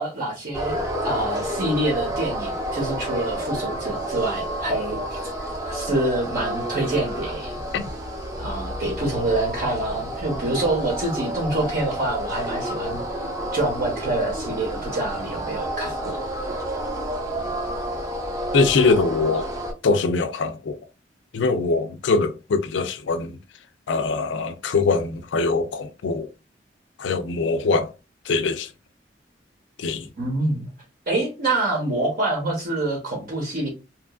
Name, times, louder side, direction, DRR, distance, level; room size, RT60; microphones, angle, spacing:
voice 1, 0.0-5.3 5.6-7.6 8.4-13.0 13.5-16.2 30.2-30.7 31.1-33.7, right 2 dB, 55° right, 0.9 m, -26 dB
sound 1, 0.5-19.7, right 1 dB, 20° right, 0.6 m, -30 dB
voice 2, 18.5-19.5 19.8-20.8 21.3-23.4 23.9-26.3 27.0-27.9 28.3-28.7 29.8-30.1, left 4 dB, 85° left, 0.4 m, -22 dB
2.8 x 2.4 x 2.3 m
head